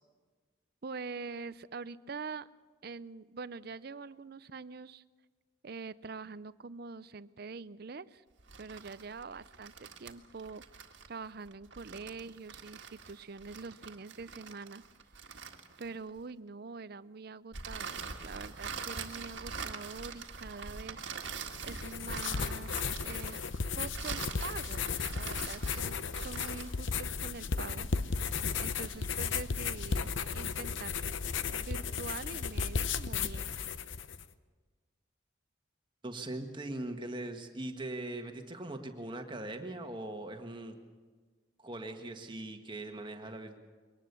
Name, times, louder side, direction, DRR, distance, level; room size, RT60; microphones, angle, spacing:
voice 1, 0.8-2.5 2.8-5.0 5.6-8.2 8.6-10.6 11.0-14.8 15.8-21.1 21.6-23.4 23.8-28.2 28.6-30.9 31.5-33.6, right 4 dB, 50° right, 17 dB, 0.5 m, -44 dB
sound 1, 8.4-16.2 17.5-26.8, right 5 dB, 65° right, 1.8 m, -43 dB
sound 2, 21.5-34.2, left 5 dB, 70° left, 0.8 m, -35 dB
voice 2, 36.0-40.7 41.6-43.6, right 1 dB, 25° right, 5 dB, 1.7 m, -40 dB
23.0 x 19.0 x 7.0 m, 1.4 s
head